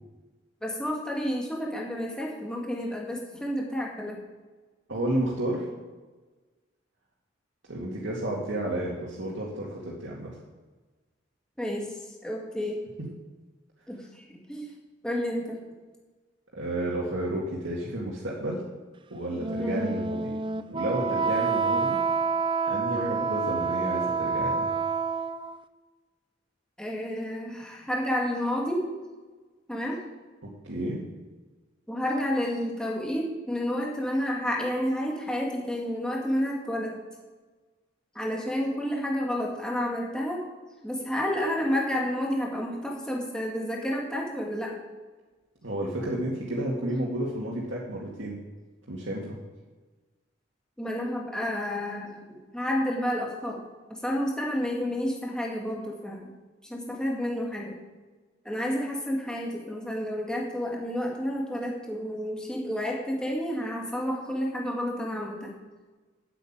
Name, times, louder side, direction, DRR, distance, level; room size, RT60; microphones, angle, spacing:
voice 1, 0.6-4.2 11.6-11.9 12.2-12.8 13.9-14.7 15.0-15.6 19.6-19.9 22.9-23.2 26.8-28.9 29.7-30.0 31.9-37.0 38.1-40.5 40.8-44.8 50.8-53.6 53.9-56.3 56.6-57.8 58.4-65.5, equal, 5° left, -2 dB, 2.2 m, -30 dB
voice 2, 4.9-5.7 7.7-10.3 16.5-18.6 19.1-20.3 20.7-22.0 22.7-24.7 30.4-31.0 45.6-48.4 48.9-49.4, right 1 dB, 85° right, -5 dB, 2.2 m, -31 dB
Wind instrument woodwind instrument, 19.3-25.6, right 5 dB, 25° right, 0.5 m, -28 dB
8.4 x 8.1 x 8.9 m, 1.3 s
head